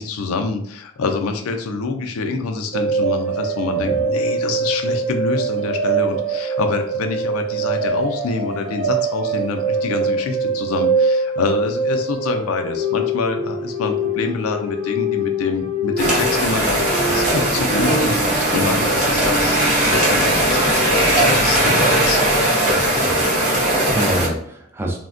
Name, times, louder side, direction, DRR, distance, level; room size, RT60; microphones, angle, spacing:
voice 1, 0.0-22.3, left 4 dB, 85° left, 5 dB, 0.4 m, -26 dB
sound 1, 2.7-20.1, right 2 dB, 80° right, 1.0 m, -24 dB
sound 2, 16.0-24.3, right 1 dB, 35° right, 0.8 m, -18 dB
voice 2, 22.7-25.0, right 1 dB, 10° right, 1 dB, 0.4 m, -28 dB
3.3 x 2.1 x 2.4 m, 0.66 s
head